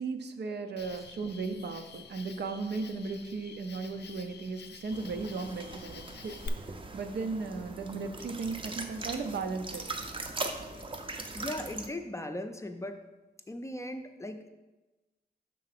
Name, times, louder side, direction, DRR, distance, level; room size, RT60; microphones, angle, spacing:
voice 1, 0.0-6.6 6.9-9.8, right 4 dB, 80° right, 6 dB, 0.6 m, -36 dB
Cricket, 0.8-6.5, left 6 dB, 80° left, 0.5 m, -48 dB
sound 1, 4.9-11.9, right 2 dB, 30° right, 0.5 m, -40 dB
voice 2, 11.3-13.1 13.5-14.5, left 1 dB, 15° left, 7 dB, 0.4 m, -38 dB
5.7 x 3.8 x 5.8 m, 1.1 s
wide cardioid pair, 115°, 17 cm